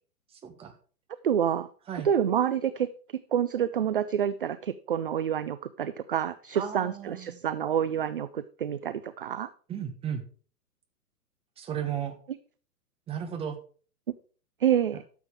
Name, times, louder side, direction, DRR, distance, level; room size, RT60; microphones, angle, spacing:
voice 1, 0.3-0.7 1.9-2.1 6.5-7.4 9.7-10.2 11.6-12.1 13.1-13.6, right 9 dB, 10° right, 6 dB, 1.3 m, -35 dB
voice 2, 1.2-1.7 2.0-2.9 3.3-9.5 14.6-15.0, right 9 dB, 35° right, 14 dB, 0.4 m, -27 dB
12.5 x 7.2 x 4.7 m, 0.41 s
figure-of-eight pair, 120°, 47 cm